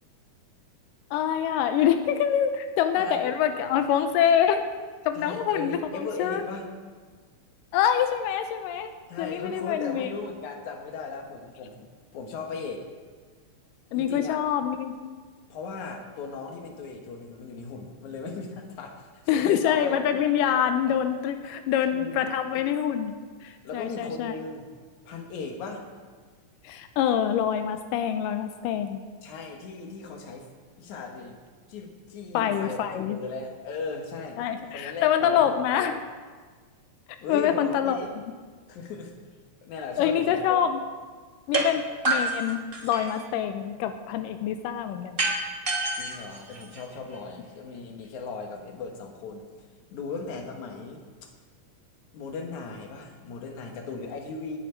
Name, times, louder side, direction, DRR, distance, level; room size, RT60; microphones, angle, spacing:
voice 1, 1.1-4.6 5.1-6.5 7.7-8.9 9.2-10.1 13.9-15.0 19.3-23.2 23.4-24.3 26.6-29.0 32.3-33.2 34.4-36.0 37.3-38.0 40.0-40.8 41.5-45.2, left 9 dB, 90° left, 8 dB, 2.3 m, -25 dB
voice 2, 3.0-3.4 5.2-6.7 9.1-11.9 12.1-12.9 13.9-14.4 15.5-19.1 19.4-20.0 20.9-21.0 21.9-22.2 23.6-24.7 25.1-25.9 29.2-30.5 30.8-31.4 31.7-34.4 34.7-35.9 37.2-38.1 38.7-39.1 39.6-40.6 46.0-49.5 49.9-51.0 52.1-54.6, left 4 dB, 65° left, 3 dB, 2.7 m, -37 dB
sound 1, 41.5-41.7 42.0-43.2 45.2-47.2, right 2 dB, 80° right, 0.5 m, -28 dB
18.0 x 9.1 x 4.6 m, 1.5 s
omnidirectional pair, 3.8 m